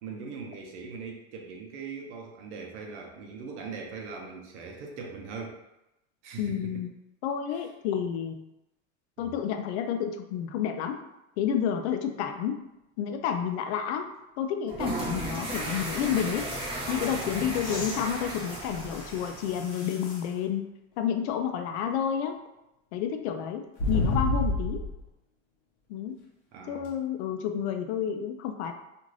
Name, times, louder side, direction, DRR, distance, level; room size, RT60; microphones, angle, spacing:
voice 1, 0.0-5.6 6.2-6.8 7.5-7.6 9.2-9.3 26.5-26.9, right 5 dB, 85° right, 1 dB, 0.7 m, -40 dB
voice 2, 6.4-6.9 7.2-8.4 9.2-10.9 11.4-12.6 13.0-14.1 14.4-16.5 16.9-20.6 21.0-22.4 22.9-24.8 25.9-26.2 26.7-28.7, left 8 dB, 70° left, 6 dB, 0.5 m, -30 dB
sound 1, 14.7-19.7, right 1 dB, 15° right, 0.5 m, -35 dB
sound 2, 17.6-20.3 21.0-21.1 23.8-25.0 26.8-26.9, left 2 dB, 50° left, 0.9 m, -32 dB
2.5 x 2.5 x 3.1 m, 0.91 s
supercardioid pair, 165°, 34 cm